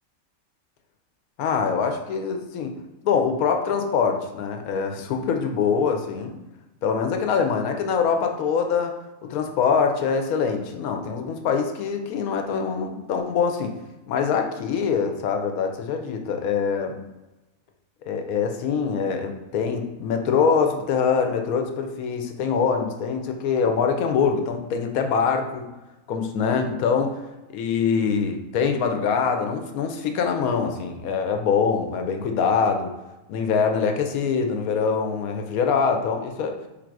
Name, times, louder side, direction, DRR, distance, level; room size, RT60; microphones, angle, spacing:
voice 1, 1.4-2.8 3.0-6.3 6.8-8.9 9.2-13.7 14.1-17.0 18.1-25.7 26.1-27.2 27.5-32.9 33.3-36.6, left 6 dB, 85° left, 5 dB, 1.0 m, -24 dB
3.4 x 2.5 x 4.5 m, 1.0 s
omnidirectional pair, 1.5 m